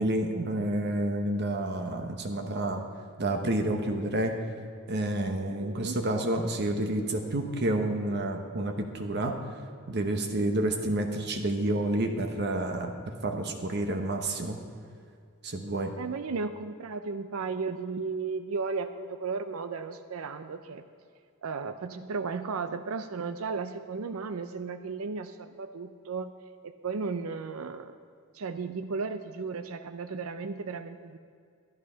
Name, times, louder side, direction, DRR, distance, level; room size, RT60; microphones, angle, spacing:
voice 1, 0.0-2.8 3.2-4.3 4.9-9.4 9.9-12.9 13.2-14.6 15.4-15.9, right 1 dB, 50° right, 4 dB, 1.0 m, -29 dB
voice 2, 5.6-6.0 16.0-20.8 21.4-26.3 26.6-27.9 28.3-31.2, right 4 dB, 85° right, 10 dB, 0.5 m, -35 dB
12.0 x 11.5 x 5.6 m, 2.2 s
head